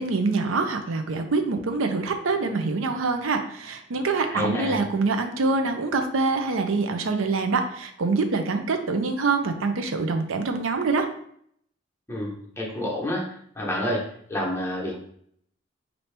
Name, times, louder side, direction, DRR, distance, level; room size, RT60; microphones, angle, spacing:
voice 1, 0.0-11.1, right 3 dB, 85° right, 6 dB, 0.5 m, -25 dB
voice 2, 4.2-4.8 12.1-13.2 13.5-14.0 14.3-15.0, left 1 dB, 15° left, -3 dB, 1.0 m, -28 dB
4.2 x 2.7 x 3.3 m, 0.66 s
head